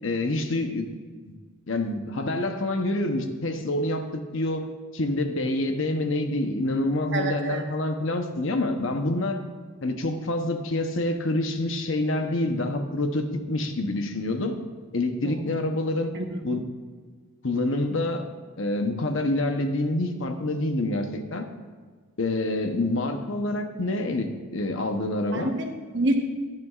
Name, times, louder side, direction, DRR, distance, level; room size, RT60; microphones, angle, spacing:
voice 1, 0.0-0.9 1.2-1.3 1.7-4.7 4.9-9.4 9.8-14.6 14.9-16.1 16.4-16.7 17.4-18.3 18.6-21.5 22.2-25.5, left 2 dB, 60° left, 6 dB, 0.9 m, -27 dB
voice 2, 7.1-7.6 15.2-15.4 16.1-16.4 25.3-26.1, right 2 dB, 50° right, 2 dB, 1.2 m, -28 dB
15.0 x 10.5 x 2.4 m, 1.5 s
head